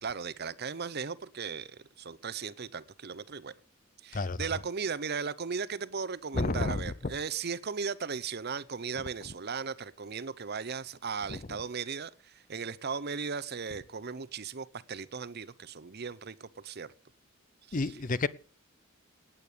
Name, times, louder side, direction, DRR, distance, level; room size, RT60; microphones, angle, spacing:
voice 1, 0.0-3.5 4.0-16.9 17.7-18.0, right 5 dB, 50° right, 0.8 m, -37 dB
voice 2, 6.3-6.9 11.3-11.4 17.7-18.3, left 3 dB, 40° left, 0.6 m, -30 dB
18.0 x 8.8 x 6.8 m
head